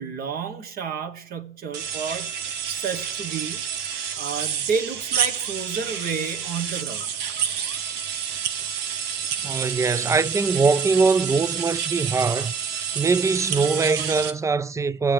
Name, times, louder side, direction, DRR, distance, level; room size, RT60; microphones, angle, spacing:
voice 1, 0.0-2.4 2.7-3.7 4.2-7.1, right 6 dB, 60° right, 1.4 m, -30 dB
sound 1, 1.7-14.3, right 8 dB, 85° right, 1.1 m, -29 dB
voice 2, 9.4-12.5 12.9-15.1, right 4 dB, 20° right, 0.4 m, -22 dB
22.5 x 7.6 x 3.4 m
cardioid pair, 110°, 17 cm